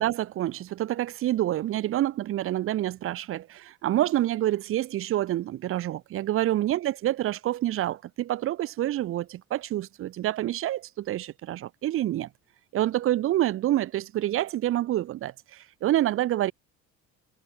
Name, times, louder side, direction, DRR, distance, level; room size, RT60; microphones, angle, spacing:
voice 1, 0.0-12.3 12.7-16.5, right 13 dB, 50° right, 0.8 m, -27 dB
cardioid pair, 125°, 29 cm